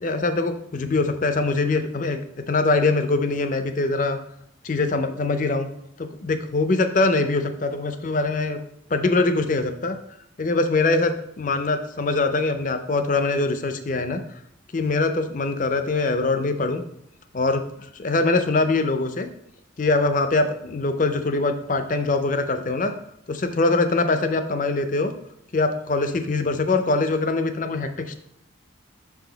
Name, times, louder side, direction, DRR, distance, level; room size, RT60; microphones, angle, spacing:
voice 1, 0.0-2.2 2.5-4.2 4.6-5.7 6.0-8.6 8.9-10.0 10.4-14.2 14.7-16.8 17.3-19.3 19.8-22.9 23.3-25.1 25.5-28.2, left 3 dB, 40° left, 8 dB, 0.5 m, -23 dB
6.0 x 4.8 x 3.9 m, 0.73 s
head